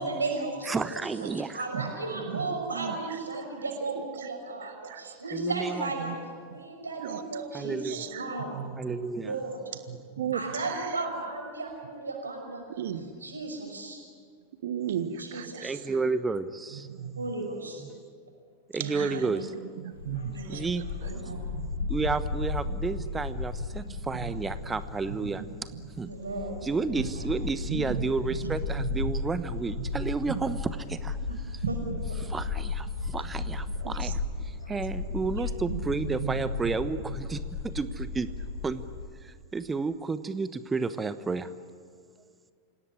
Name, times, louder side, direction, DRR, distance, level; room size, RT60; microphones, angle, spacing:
voice 1, 0.0-0.8 1.3-6.1 6.5-8.5 9.2-9.6 10.3-12.6 13.0-14.0 15.2-15.8 17.2-17.8 18.8-19.2 20.3-20.7 21.0-21.4 26.1-26.6 31.7-31.8, right 3 dB, 75° right, 2 dB, 6.0 m, -35 dB
voice 2, 0.7-1.6 5.3-5.9 7.5-8.1 8.8-9.4 15.6-16.9 17.8-17.9 18.7-19.5 20.5-21.1 21.9-26.1 26.6-31.6 32.2-38.3 38.6-38.8 39.2-41.5, right 4 dB, 15° right, 13 dB, 1.0 m, -32 dB
voice 3, 2.3-3.0 4.8-5.0 6.0-6.1 6.5-6.6 7.0-8.3 8.5-9.0 9.9-10.8 12.8-13.1 14.6-15.7 16.9-17.3 18.8-19.5 19.8-20.6 21.3-21.4 23.7-23.8 24.2-24.3 25.2-25.3 25.7-25.8 27.6-28.0 28.4-29.2 30.3-30.4 31.6-31.7 33.8-34.1 35.1-35.2 35.7-35.8 36.1-36.6, right 9 dB, 60° right, 12 dB, 1.5 m, -35 dB
Bark, 19.9-39.1, left 4 dB, 65° left, 2.1 m, -35 dB
26.5 x 17.5 x 9.9 m, 2.1 s
figure-of-eight pair, 90°, 0 cm